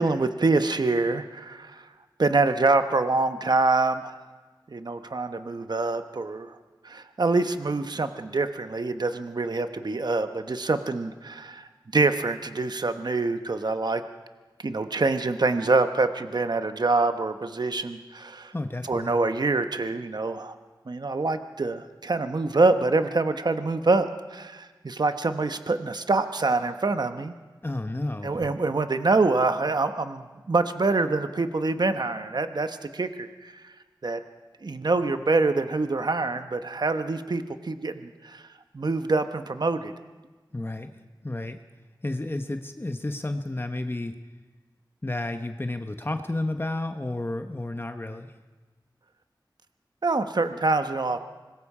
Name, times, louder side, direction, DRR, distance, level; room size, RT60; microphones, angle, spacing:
voice 1, 0.0-1.8 2.2-4.2 4.7-6.5 6.8-11.7 11.9-14.0 14.6-18.5 18.9-20.5 20.9-27.3 28.2-33.5 34.0-34.2 34.6-38.4 38.7-39.9 50.0-51.2, right 3 dB, 60° right, 8 dB, 1.1 m, -25 dB
voice 2, 18.5-19.1 27.6-28.4 40.5-40.9 41.2-41.6 42.0-44.2 45.0-48.3, left 2 dB, 30° left, 7 dB, 1.0 m, -31 dB
25.0 x 21.0 x 4.9 m, 1.3 s
wide cardioid pair, 65°, 8 cm